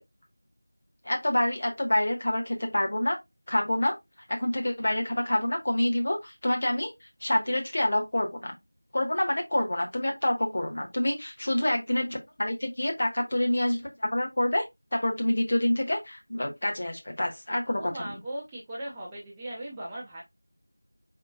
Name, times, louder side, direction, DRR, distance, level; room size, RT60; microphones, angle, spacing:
voice 1, 1.0-3.2 3.5-3.9 4.3-6.9 7.2-8.5 8.9-14.6 14.9-18.2, left 1 dB, 30° left, 1.1 m, -27 dB
voice 2, 17.7-20.2, right 1 dB, 5° right, 0.4 m, -38 dB
4.3 x 4.0 x 2.6 m
figure-of-eight pair, 175°, 0 cm